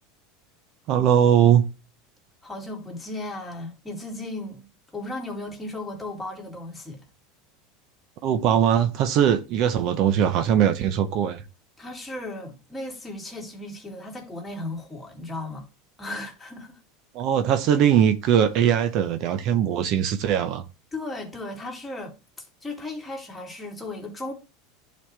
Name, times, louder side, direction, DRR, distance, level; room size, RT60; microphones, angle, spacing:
voice 1, 0.9-1.6 8.2-11.4 17.1-20.6, right 9 dB, 55° right, 0.8 m, -20 dB
voice 2, 2.4-4.7 4.9-7.0 11.8-15.7 16.0-16.8 20.9-24.3, left 2 dB, 10° left, 2.6 m, -36 dB
11.0 x 4.2 x 3.3 m
supercardioid pair, 125°, 0 cm